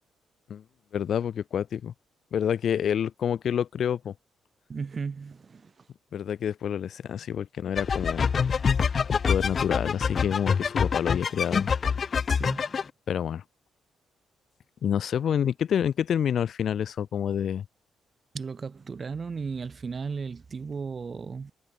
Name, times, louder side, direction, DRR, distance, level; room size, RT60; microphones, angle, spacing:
voice 1, 0.9-1.9 2.3-4.1 6.1-8.3 9.1-11.7 13.1-13.4 14.8-17.6, left 9 dB, 55° left, 1.0 m, -28 dB
voice 2, 4.7-5.8 12.3-12.7 18.3-21.5, right 5 dB, 30° right, 0.9 m, -35 dB
sound 1, 7.8-12.8, left 6 dB, 35° left, 0.7 m, -25 dB
cardioid pair, 145°, 0 cm